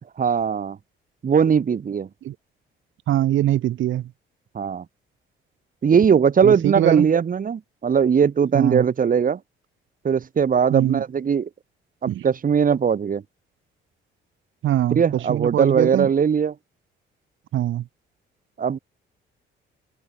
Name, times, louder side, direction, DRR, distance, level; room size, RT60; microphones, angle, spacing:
voice 1, 0.2-0.8 1.2-2.1 4.5-4.8 5.8-9.4 10.0-11.5 12.0-13.2 14.9-16.5 18.6-18.8, right 7 dB, 45° right, 2.1 m, -20 dB
voice 2, 3.1-4.0 6.4-7.1 8.5-8.8 10.7-11.0 12.1-12.2 14.6-15.0 15.3-16.1 17.5-17.8, right 13 dB, 75° right, 2.6 m, -22 dB
cardioid pair, 90°, 20 cm